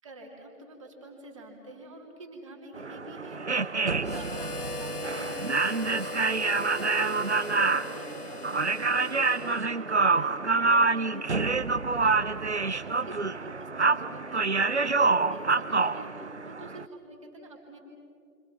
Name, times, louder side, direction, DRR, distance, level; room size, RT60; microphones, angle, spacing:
voice 1, 0.0-11.6 11.9-17.8, right 2 dB, 20° right, 0 dB, 3.3 m, -47 dB
sound 1, 2.8-16.9, right 3 dB, 45° right, 0.7 m, -27 dB
Harmonica, 4.0-10.0, left 3 dB, 70° left, 1.1 m, -40 dB
29.0 x 25.0 x 6.0 m, 2.5 s
figure-of-eight pair, 160°, 47 cm